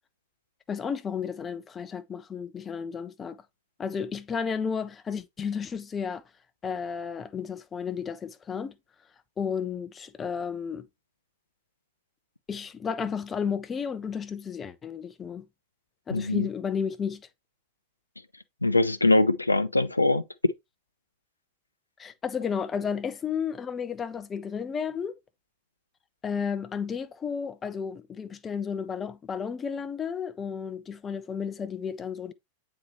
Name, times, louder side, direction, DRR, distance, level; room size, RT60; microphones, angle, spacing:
voice 1, 0.7-3.4 3.8-6.2 6.6-8.7 9.4-10.9 12.5-15.4 16.1-17.2 22.0-25.2 26.2-32.3, left 6 dB, 20° left, 0.6 m, -32 dB
voice 2, 16.1-16.5 18.6-20.2, left 2 dB, 85° left, 0.4 m, -22 dB
7.8 x 4.3 x 3.0 m
figure-of-eight pair, 90°, 0 cm